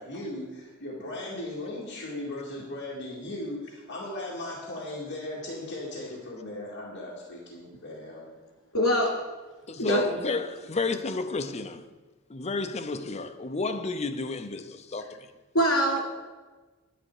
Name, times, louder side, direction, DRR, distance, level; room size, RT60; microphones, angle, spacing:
voice 1, 0.0-8.2, left 1 dB, 55° left, 2.2 m, -37 dB
voice 2, 8.7-9.1 9.8-10.2 15.5-16.0, equal, 80° left, 3.2 m, -23 dB
voice 3, 9.7-11.9 12.3-15.3, left 3 dB, 30° left, 0.6 m, -31 dB
10.0 x 10.0 x 4.8 m
head